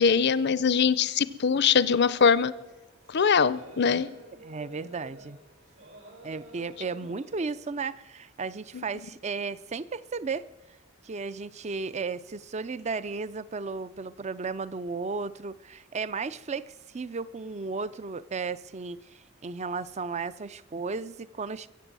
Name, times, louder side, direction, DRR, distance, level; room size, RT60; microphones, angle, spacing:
voice 1, 0.0-2.5 3.1-4.1 8.7-8.8, left 6 dB, 55° left, 18 dB, 0.6 m, -22 dB
sound 1, 2.1-7.5, right 2 dB, 75° right, 4.7 m, -51 dB
voice 2, 4.4-5.4 6.2-10.5 11.0-21.7, right 4 dB, 35° right, 17 dB, 0.5 m, -34 dB
23.0 x 7.9 x 7.6 m, 1.1 s
head